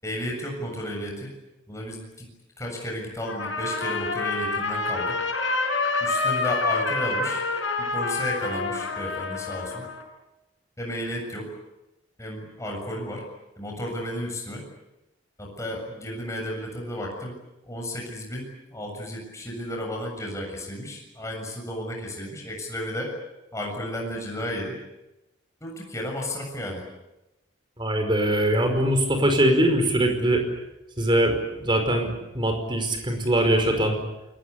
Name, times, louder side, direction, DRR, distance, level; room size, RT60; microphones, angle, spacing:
voice 1, 0.0-1.3 1.7-2.3 2.6-5.2 6.0-7.4 7.8-9.8 10.8-11.5 12.2-13.2 13.6-14.6 15.4-17.4 17.6-23.2 23.5-24.8 25.6-26.8, equal, 15° left, 0 dB, 7.3 m, -33 dB
Trumpet, 3.3-10.0, left 3 dB, 65° left, 6.2 m, -27 dB
voice 2, 27.8-30.4 31.0-34.0, right 1 dB, 25° right, 5 dB, 5.2 m, -22 dB
29.0 x 21.5 x 8.5 m, 0.94 s
head